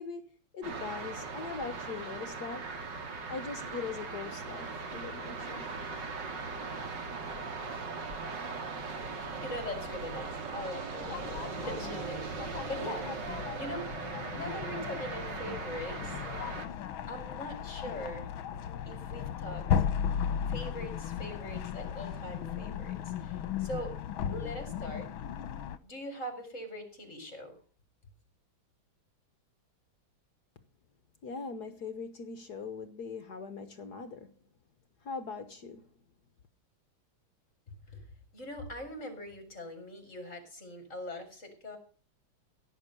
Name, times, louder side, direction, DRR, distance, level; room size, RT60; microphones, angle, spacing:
voice 1, 0.0-2.7 3.3-5.7 31.2-34.4 35.0-35.9, left 5 dB, 55° left, 1.5 m, -41 dB
sound 1, 0.6-16.7, right 4 dB, 60° right, 2.5 m, -39 dB
voice 2, 9.2-13.9 14.3-16.2 17.0-18.3 18.8-19.9 20.5-23.9 24.3-25.1 25.8-27.6 37.9-38.0 38.3-41.8, equal, 35° left, 4.8 m, -42 dB
sound 2, 11.0-25.8, left 8 dB, 80° left, 1.7 m, -36 dB
16.5 x 7.9 x 6.8 m
omnidirectional pair, 2.2 m